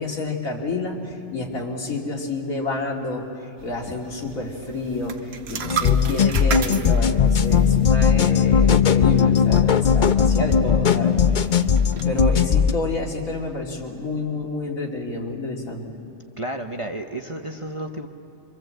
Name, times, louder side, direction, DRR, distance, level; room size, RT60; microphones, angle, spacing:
voice 1, 0.0-3.3 3.6-11.2 11.9-15.9, left 2 dB, 80° left, -1 dB, 3.1 m, -29 dB
sound 1, 3.6-12.4, right 7 dB, 55° right, 1.1 m, -36 dB
sound 2, 5.6-12.7, left 7 dB, 45° left, 0.7 m, -18 dB
voice 2, 16.4-18.1, right 1 dB, 25° right, 4 dB, 0.9 m, -31 dB
26.5 x 25.0 x 7.8 m, 2.7 s
omnidirectional pair, 1.4 m